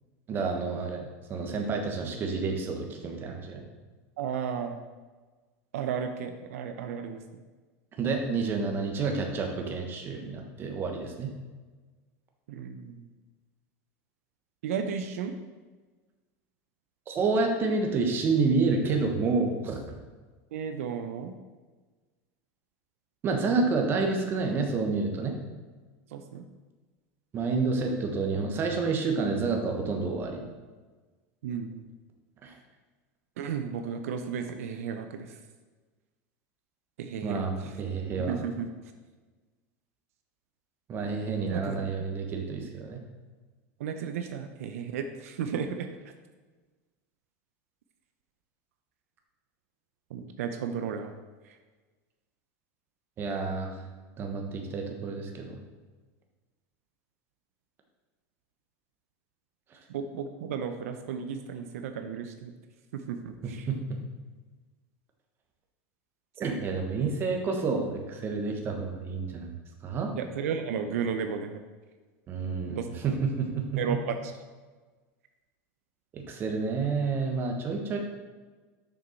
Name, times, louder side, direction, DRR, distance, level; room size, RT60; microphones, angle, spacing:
voice 1, 0.3-3.7 8.0-11.3 17.1-19.9 23.2-25.3 27.3-30.4 32.4-32.5 37.2-38.4 40.9-43.0 53.2-53.8 54.2-55.6 63.4-64.0 66.4-69.6 69.8-70.1 72.3-73.8 76.1-78.0, right 4 dB, 30° right, 3 dB, 1.3 m, -29 dB
voice 2, 4.2-4.8 5.7-7.2 12.5-13.1 14.6-15.3 20.5-21.3 26.1-26.4 31.4-31.8 33.4-35.4 37.0-37.4 38.2-38.7 41.5-41.8 43.8-45.9 50.1-51.1 59.9-62.5 62.9-63.7 70.2-71.6 72.6-73.1 73.8-74.3, right 7 dB, 90° right, 7 dB, 0.7 m, -34 dB
6.5 x 6.3 x 4.5 m, 1.3 s
supercardioid pair, 145°, 8 cm